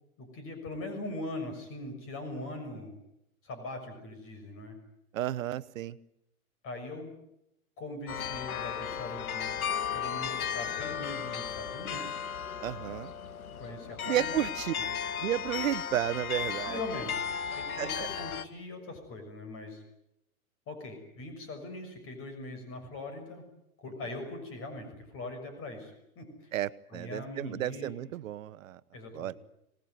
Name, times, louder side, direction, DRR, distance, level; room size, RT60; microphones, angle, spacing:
voice 1, 0.2-2.9 3.4-4.8 6.6-7.1 7.8-9.5 9.9-12.2 13.6-14.4 16.6-17.2 17.6-19.8 20.7-23.4 23.8-26.5 26.9-27.9 28.9-29.3, left 2 dB, 30° left, 7 dB, 6.5 m, -41 dB
voice 2, 5.1-6.0 12.6-13.1 14.0-14.7 15.2-16.8 17.8-18.1 26.5-28.8 29.1-29.4, right 13 dB, 65° right, 16 dB, 1.2 m, -32 dB
sound 1, 8.1-18.4, left 8 dB, 75° left, 1.7 m, -35 dB
26.0 x 19.5 x 9.5 m, 0.82 s
hypercardioid pair, 115°, 43 cm